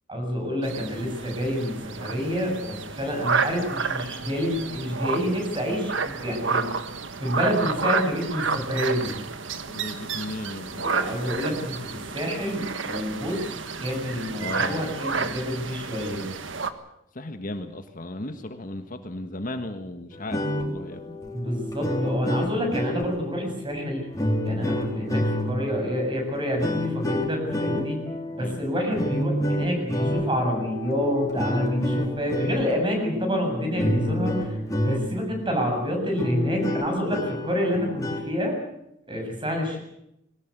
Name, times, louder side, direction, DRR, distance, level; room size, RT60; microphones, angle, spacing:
voice 1, 0.1-6.6 7.2-9.1 10.7-13.5 13.8-16.3 21.3-24.1 24.4-28.0 28.3-38.6 39.1-39.8, equal, 25° right, 2 dB, 7.5 m, -28 dB
sound 1, 0.6-16.7, right 5 dB, 75° right, 1.6 m, -30 dB
voice 2, 9.7-10.9 14.4-15.3 17.1-21.2 28.4-28.6, left 1 dB, 45° left, 7 dB, 1.5 m, -36 dB
sound 2, 20.1-35.3 35.8-35.9 36.1-38.3, left 1 dB, 20° left, 4.1 m, -29 dB
22.0 x 18.5 x 8.2 m, 0.80 s
head